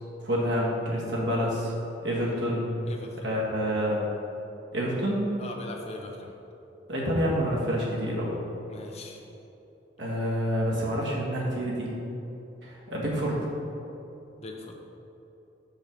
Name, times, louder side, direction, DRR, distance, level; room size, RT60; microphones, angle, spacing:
voice 1, 0.2-1.7 2.0-2.7 3.2-4.0 4.7-5.3 6.9-8.4 10.0-11.9 12.6-13.5, equal, 80° right, -4 dB, 1.6 m, -28 dB
voice 2, 2.9-3.3 5.4-6.3 8.7-9.3 14.4-14.7, left 2 dB, 35° left, 1 dB, 0.8 m, -40 dB
6.3 x 5.3 x 5.2 m, 3.0 s
head